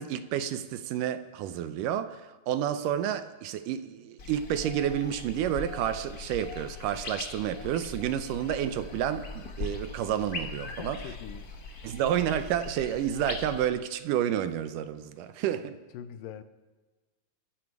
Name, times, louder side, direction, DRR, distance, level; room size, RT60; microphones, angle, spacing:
voice 1, 0.0-11.0 11.8-15.8, right 10 dB, 75° right, 2.2 m, -30 dB
sound 1, 4.2-13.7, left 3 dB, 50° left, 1.0 m, -40 dB
voice 2, 10.6-11.6 11.9-12.0 15.9-16.4, left 9 dB, 75° left, 2.4 m, -43 dB
28.0 x 10.5 x 4.7 m
omnidirectional pair, 4.0 m